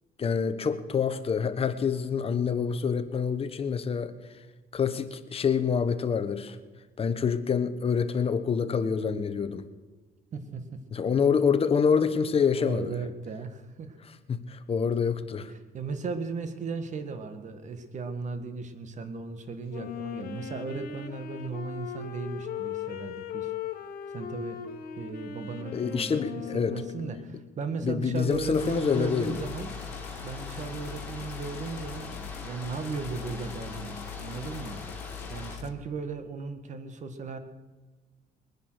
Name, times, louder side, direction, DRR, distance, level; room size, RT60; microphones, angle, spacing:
voice 1, 0.2-4.1 4.7-6.6 7.0-9.6 10.9-12.9 14.3-15.5 25.7-26.8 27.8-29.4, left 6 dB, 35° left, 9 dB, 1.3 m, -26 dB
voice 2, 10.3-10.8 12.5-14.0 15.5-23.5 24.1-24.6 25.0-29.7 30.2-34.8 35.3-37.4, right 4 dB, 45° right, 9 dB, 1.8 m, -36 dB
Wind instrument woodwind instrument, 19.7-27.4, left 8 dB, 60° left, 1.9 m, -38 dB
sound 1, 28.3-28.8 29.2-35.7, left 11 dB, 80° left, 1.3 m, -42 dB
sound 2, 28.6-35.6, left 2 dB, 10° left, 4.5 m, -42 dB
21.5 x 10.0 x 6.4 m, 1.3 s
cardioid pair, 110°, 17 cm